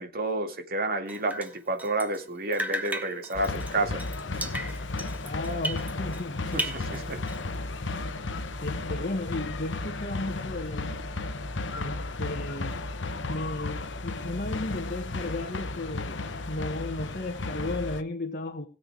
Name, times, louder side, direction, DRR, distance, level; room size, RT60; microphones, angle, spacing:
voice 1, 0.0-4.0 6.5-7.2, right 2 dB, 55° right, 2.3 m, -30 dB
Drip, 1.1-2.3 2.5-6.3 6.5-7.5, right 1 dB, 10° right, 1.6 m, -36 dB
sound 1, 3.3-18.0, left 2 dB, 80° left, 1.0 m, -34 dB
voice 2, 5.2-6.8 8.6-11.1 11.8-12.8 13.3-18.7, left 2 dB, 50° left, 1.5 m, -34 dB
21.0 x 7.9 x 3.4 m
head